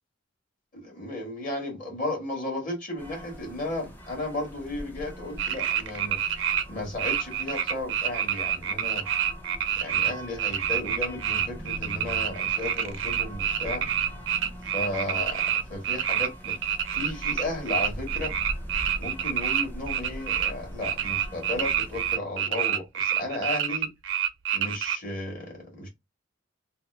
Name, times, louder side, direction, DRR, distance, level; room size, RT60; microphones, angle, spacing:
voice 1, 0.7-6.2 6.7-9.1 9.8-13.8 14.7-15.4 15.7-16.5 16.9-18.3 19.0-23.9 24.5-25.9, left 1 dB, 45° left, 1.3 m, -34 dB
sound 1, 3.0-22.2, equal, 10° left, 0.5 m, -41 dB
sound 2, 5.4-6.6 7.0-10.1 10.4-20.5 20.8-25.0, right 9 dB, 75° right, 0.4 m, -27 dB
2.8 x 2.3 x 3.1 m
head